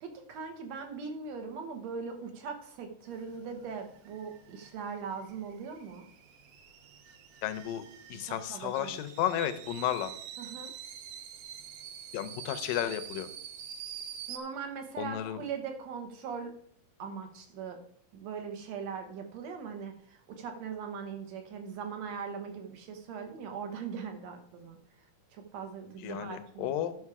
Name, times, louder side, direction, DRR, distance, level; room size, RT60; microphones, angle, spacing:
voice 1, 0.0-6.0 8.2-9.0 10.4-10.7 14.3-16.5 17.0-17.8 18.1-26.7, right 6 dB, 65° right, 5 dB, 2.0 m, -40 dB
sound 1, 3.1-14.4, right 9 dB, 90° right, 1.3 m, -46 dB
voice 2, 7.4-7.8 8.1-10.1 12.1-13.3 15.0-15.4 26.0-27.0, left 11 dB, 80° left, 10 dB, 2.4 m, -33 dB
12.0 x 6.2 x 4.8 m, 0.65 s
omnidirectional pair, 3.9 m